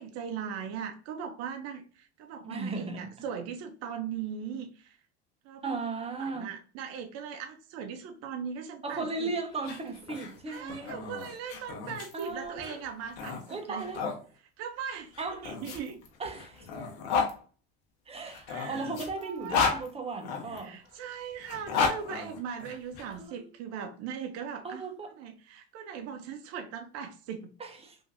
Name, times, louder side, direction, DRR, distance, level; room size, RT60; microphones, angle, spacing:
voice 1, 0.0-5.0 5.4-5.8 6.2-9.3 10.5-13.9 14.6-15.1 15.4-16.0 18.5-18.9 19.2-19.8 20.5-24.9 25.2-27.5, right 7 dB, 50° right, 0.6 m, -39 dB
voice 2, 2.4-3.1 5.6-6.5 8.8-10.9 12.1-12.8 13.5-14.1 15.2-15.5 16.2-16.7 18.1-20.8 23.1-23.5 24.6-25.1 27.6-28.0, right 3 dB, 20° right, 0.8 m, -36 dB
sound 1, 9.5-14.2 15.1-17.3 18.2-20.6 21.4-23.0, left 5 dB, 75° left, 1.1 m, -33 dB
3.5 x 2.7 x 2.5 m
supercardioid pair, 90°, 33 cm